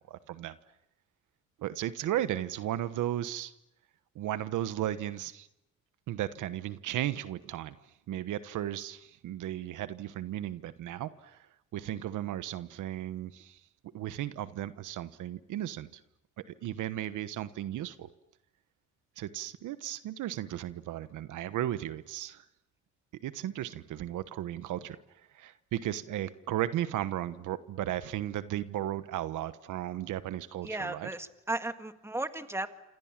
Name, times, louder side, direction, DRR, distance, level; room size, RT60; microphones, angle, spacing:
voice 1, 0.1-0.6 1.6-3.5 4.1-5.5 6.1-7.8 8.1-11.5 11.7-13.6 13.9-16.0 16.4-18.1 19.2-22.4 23.2-25.0 25.3-31.1, right 12 dB, 80° right, 13 dB, 1.2 m, -35 dB
voice 2, 30.6-32.7, right 2 dB, 10° right, 8 dB, 1.8 m, -35 dB
28.0 x 27.0 x 7.4 m, 0.89 s
cardioid pair, 90°, 30 cm